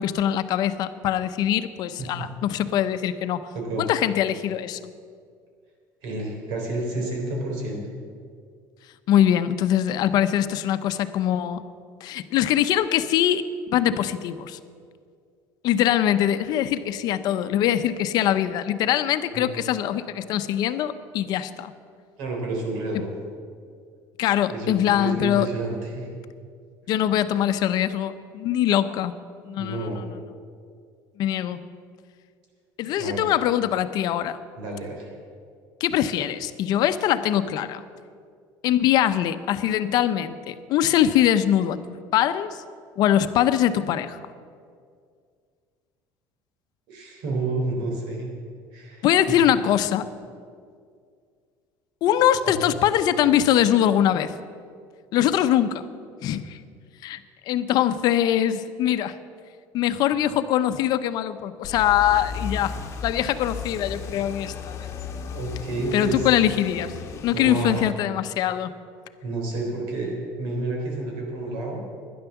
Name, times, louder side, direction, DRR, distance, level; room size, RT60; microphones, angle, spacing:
voice 1, 0.0-3.4 3.8-4.8 9.1-11.6 12.0-13.4 13.7-14.6 15.6-21.7 24.2-25.5 26.9-29.1 29.4-29.9 31.2-31.6 32.8-34.4 35.8-37.8 38.6-41.8 42.1-42.6 43.0-44.2 49.0-50.1 52.0-54.3 55.1-55.8 56.2-56.6 57.0-57.2 57.5-59.1 59.7-62.7 63.0-64.9 65.9-66.9 67.2-68.7, left 11 dB, 60° left, 11 dB, 0.7 m, -22 dB
voice 2, 3.5-3.9 6.0-7.8 19.3-19.5 22.2-23.1 24.5-26.1 29.6-30.0 33.0-33.3 34.6-35.1 46.9-48.3 48.7-49.3 52.4-52.7 65.3-66.3 67.3-67.9 69.2-71.8, right 2 dB, 80° right, 0 dB, 3.6 m, -30 dB
sound 1, 61.6-67.9, left 6 dB, 40° left, 1.3 m, -35 dB
11.5 x 10.5 x 7.1 m, 2.1 s
cardioid pair, 120°, 8 cm